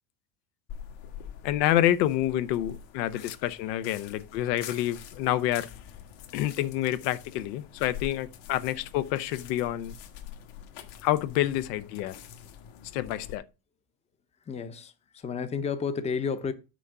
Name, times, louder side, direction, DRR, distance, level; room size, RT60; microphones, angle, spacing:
sound 1, 0.7-13.4, left 9 dB, 60° left, 1.5 m, -45 dB
voice 1, 1.4-5.7 6.3-10.0 11.0-12.2 12.9-13.4, left 13 dB, 85° left, 0.9 m, -28 dB
voice 2, 14.4-16.5, left 6 dB, 15° left, 0.6 m, -31 dB
6.3 x 4.8 x 6.7 m
supercardioid pair, 130°, 48 cm